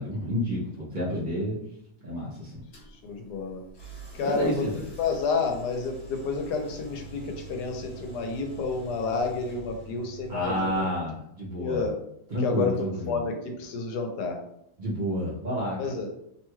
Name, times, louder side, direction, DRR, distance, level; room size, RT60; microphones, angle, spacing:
voice 1, 0.0-1.6 2.0-2.6 4.2-4.7 10.3-11.8 12.3-13.2 14.8-15.9, equal, 50° right, -5 dB, 0.5 m, -30 dB
sound 1, 2.7-2.9 3.7-10.9, right 2 dB, 50° left, 0.9 m, -45 dB
voice 2, 3.0-3.6 4.1-10.8 11.6-12.0 12.4-14.4 15.8-16.1, left 4 dB, 80° left, 4 dB, 1.2 m, -30 dB
2.9 x 2.2 x 3.0 m, 0.73 s
omnidirectional pair, 1.8 m